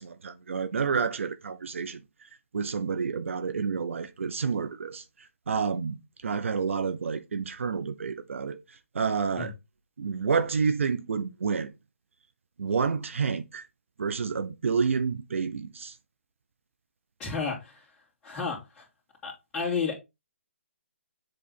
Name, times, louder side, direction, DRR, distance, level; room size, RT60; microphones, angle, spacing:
voice 1, 0.0-2.0 2.5-5.0 5.5-8.6 8.9-9.5 10.0-11.7 12.6-13.7 14.0-15.9, right 5 dB, 65° right, 0.8 m, -29 dB
voice 2, 17.2-17.8 18.2-18.8 19.2-20.0, left 5 dB, 15° left, 2.6 m, -32 dB
7.7 x 3.3 x 4.1 m
hypercardioid pair, 155°, 7 cm